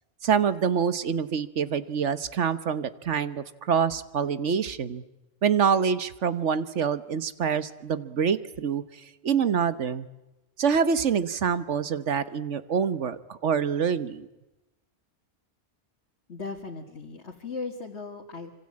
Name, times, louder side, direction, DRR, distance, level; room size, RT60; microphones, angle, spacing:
voice 1, 0.2-5.0 5.4-8.8 9.2-10.1 10.6-14.3, right 7 dB, 90° right, 14 dB, 1.5 m, -26 dB
voice 2, 16.3-18.5, left 4 dB, 70° left, 1 dB, 2.3 m, -37 dB
26.0 x 25.5 x 8.7 m, 0.97 s
omnidirectional pair, 1.2 m